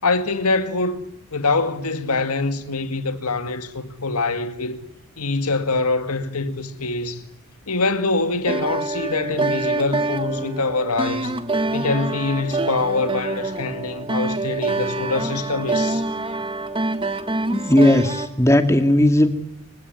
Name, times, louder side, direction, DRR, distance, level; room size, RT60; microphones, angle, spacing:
voice 1, 0.0-1.1 1.3-4.8 5.2-7.2 7.7-11.4 11.7-16.0, left 3 dB, 90° left, 2.1 m, -24 dB
sound 1, 8.5-18.3, right 2 dB, 25° right, 1.4 m, -26 dB
voice 2, 17.5-19.3, left 1 dB, 15° left, 2.3 m, -16 dB
28.5 x 16.0 x 9.4 m
head